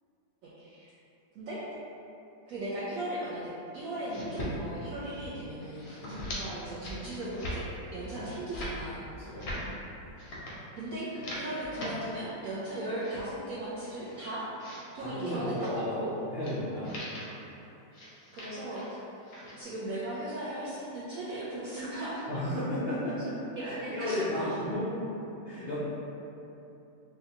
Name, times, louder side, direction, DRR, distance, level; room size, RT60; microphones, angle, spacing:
voice 1, 0.4-0.9 1.3-1.6 2.5-3.4 3.7-7.6 7.9-9.0 10.7-14.5 14.9-16.1 18.3-19.0 19.6-22.2 23.6-24.5, right 1 dB, 75° right, -9 dB, 0.7 m, -37 dB
sound 1, 3.9-4.5 4.9-5.3 5.6-6.4 6.7-7.0 7.3-7.6 8.0-8.7 9.2-9.6 10.2-10.5 11.0-11.9 12.4-13.2 13.8-14.8 15.5-15.7 16.4-16.6 16.8-17.3 17.9-18.9 19.2-19.6, equal, 55° left, 0.7 m, -41 dB
voice 2, 9.2-9.6 15.0-16.0 16.3-17.0 22.3-23.4 23.6-24.9 25.4-25.9, left 1 dB, 90° left, -11 dB, 0.5 m, -34 dB
4.6 x 2.2 x 2.8 m, 2.9 s
omnidirectional pair, 2.0 m